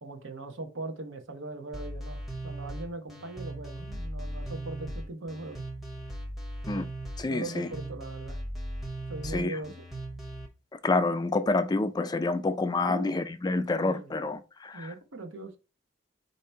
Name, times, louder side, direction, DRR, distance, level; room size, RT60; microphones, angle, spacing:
voice 1, 0.0-5.6 7.3-8.4 9.1-9.7 12.8-13.2 13.7-14.2 14.7-15.5, right 2 dB, 70° right, 0.8 m, -40 dB
sound 1, 1.7-10.5, right 1 dB, ahead, 0.7 m, -38 dB
voice 2, 7.2-7.7 9.2-9.6 10.7-14.9, left 3 dB, 20° left, 0.3 m, -28 dB
4.3 x 2.8 x 4.4 m
head